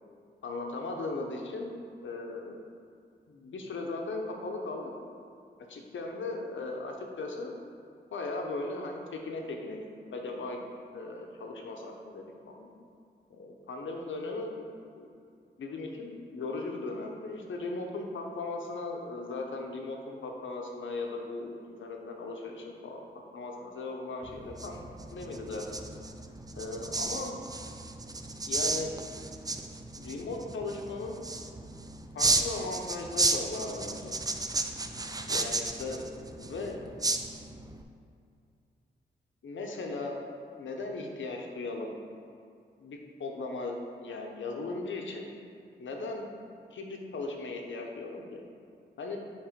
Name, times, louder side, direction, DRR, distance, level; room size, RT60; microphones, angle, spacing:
voice 1, 0.4-1.7 2.0-2.6 3.3-4.9 5.7-7.6 8.1-10.6 10.9-12.7 13.3-14.5 14.9-15.1 15.6-23.0 23.3-24.8 25.1-25.8 26.5-27.3 28.5-28.9 29.9-31.2 32.1-34.1 35.3-36.1 36.4-36.8 39.4-40.2 40.6-41.9 42.8-45.3 45.8-46.3 46.7-48.4 49.0-49.2, left 3 dB, 75° left, 1 dB, 0.8 m, -37 dB
sound 1, 24.2-37.8, right 2 dB, 20° right, 0.5 m, -33 dB
7.3 x 3.3 x 5.1 m, 2.4 s
cardioid pair, 55°, 20 cm